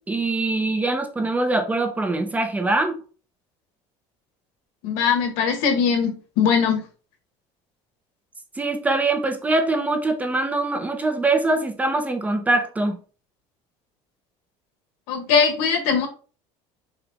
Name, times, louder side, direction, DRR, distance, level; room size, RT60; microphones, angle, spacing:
voice 1, 0.0-3.0 8.6-13.0, right 2 dB, 10° right, 5 dB, 0.5 m, -23 dB
voice 2, 4.8-6.8 15.1-16.1, left 6 dB, 85° left, 4 dB, 1.4 m, -21 dB
5.8 x 2.2 x 4.0 m, 0.37 s
cardioid pair, 165°, 14 cm